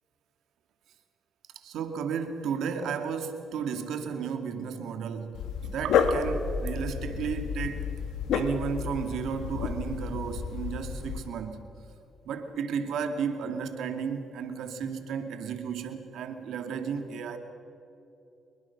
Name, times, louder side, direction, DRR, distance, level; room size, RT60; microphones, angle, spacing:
voice 1, 1.6-7.9 8.3-11.6 12.2-17.4, right 6 dB, 80° right, 7 dB, 2.2 m, -33 dB
Dog, 5.3-11.3, left 6 dB, 85° left, 1.7 m, -30 dB
25.5 x 22.0 x 6.0 m, 2.9 s
cardioid pair, 90°, 0 cm